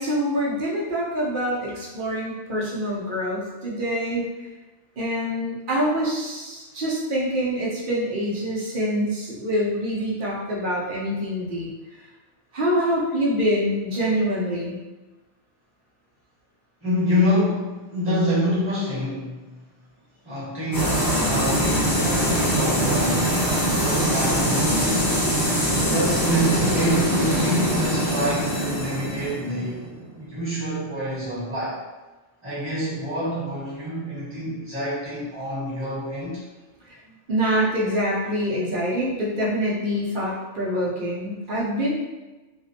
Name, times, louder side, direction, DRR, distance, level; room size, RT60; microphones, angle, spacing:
voice 1, 0.0-4.2 5.0-11.7 12.5-14.8 37.3-42.1, equal, 55° right, -5 dB, 0.6 m, -25 dB
voice 2, 16.8-19.6 20.2-23.4 23.8-25.2 25.8-29.9 30.2-31.8 32.4-36.4, equal, 10° right, -11 dB, 1.2 m, -27 dB
sound 1, 20.7-30.3, equal, 35° left, 0.3 m, -23 dB
2.4 x 2.1 x 2.6 m, 1.2 s
omnidirectional pair, 1.3 m